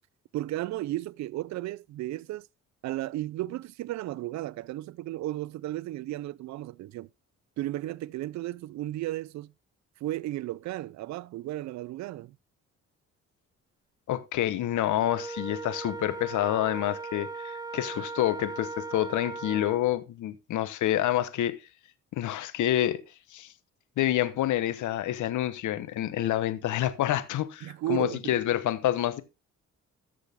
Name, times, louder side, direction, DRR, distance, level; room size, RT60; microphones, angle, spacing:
voice 1, 0.3-2.5 2.8-7.1 7.6-9.5 10.0-12.4 27.6-28.3, right 15 dB, 65° right, 0.5 m, -34 dB
voice 2, 14.1-21.5 22.1-23.0 23.3-23.5 24.0-29.2, left 13 dB, 75° left, 1.0 m, -28 dB
Wind instrument woodwind instrument, 15.0-19.9, right 3 dB, 15° right, 1.0 m, -38 dB
13.5 x 6.4 x 3.6 m
cardioid pair, 90°, 30 cm